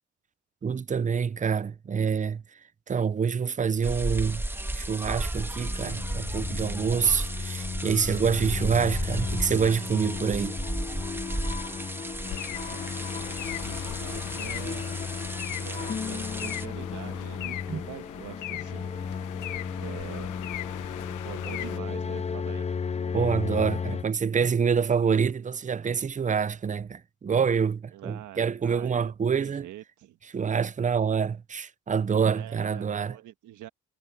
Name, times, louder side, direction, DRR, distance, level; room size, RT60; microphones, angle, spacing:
voice 1, 0.6-2.4 2.9-4.4 4.7-10.6 17.7-17.8 23.1-29.7 30.3-33.2, right 6 dB, 25° right, 0.6 m, -26 dB
sound 1, 3.8-16.7, right 1 dB, 5° right, 1.6 m, -34 dB
sound 2, 5.5-24.0, left 6 dB, 20° left, 0.5 m, -35 dB
sound 3, 12.2-21.8, left 15 dB, 85° left, 1.0 m, -39 dB
voice 2, 12.4-14.9 15.5-18.9 19.8-20.4 21.2-22.7 27.9-30.2 32.2-33.7, right 13 dB, 80° right, 1.5 m, -44 dB
cardioid pair, 90°, 30 cm